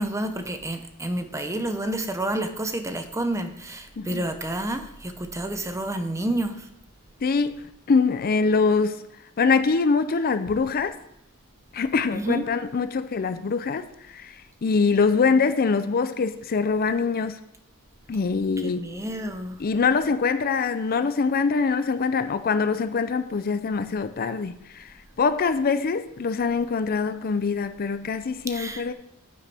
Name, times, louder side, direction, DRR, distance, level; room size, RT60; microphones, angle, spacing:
voice 1, 0.0-6.7 12.1-12.5 18.6-19.6 28.5-28.8, right 1 dB, 15° right, 0.7 m, -29 dB
voice 2, 7.2-7.5 7.9-9.0 9.4-11.0 11.7-14.4 14.6-17.4 18.1-18.9 19.6-28.9, left 4 dB, 45° left, 0.4 m, -24 dB
9.3 x 8.5 x 3.4 m
head